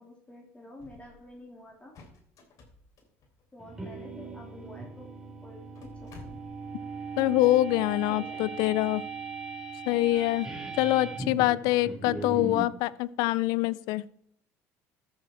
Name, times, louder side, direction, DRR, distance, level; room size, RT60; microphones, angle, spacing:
voice 1, 0.0-2.0 3.5-6.4 8.1-8.5, left 1 dB, 20° left, 0 dB, 2.7 m, -49 dB
sound 1, 0.8-1.4 1.7-3.8 4.7-4.8 5.0-5.1 5.6-6.8, left 3 dB, 55° left, 3.3 m, -52 dB
sound 2, 3.6-12.7, right 3 dB, 10° right, 3.3 m, -39 dB
voice 2, 7.2-9.0 9.9-10.5 10.8-14.1, left 17 dB, 75° left, 20 dB, 0.5 m, -25 dB
13.5 x 7.2 x 4.3 m, 0.70 s
supercardioid pair, 80°, 7 cm